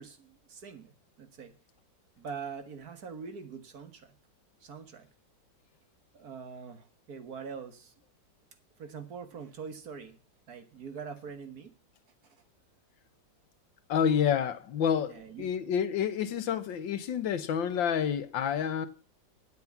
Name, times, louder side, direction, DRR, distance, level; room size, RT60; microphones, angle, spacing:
voice 1, 0.0-1.5 2.2-4.2 4.6-5.1 6.1-7.9 8.8-10.2 10.5-11.7 12.2-12.4 15.1-15.5, right 6 dB, 55° right, 1.8 m, -43 dB
voice 2, 13.9-18.9, left 8 dB, 80° left, 1.7 m, -29 dB
9.8 x 8.0 x 7.1 m
omnidirectional pair, 2.0 m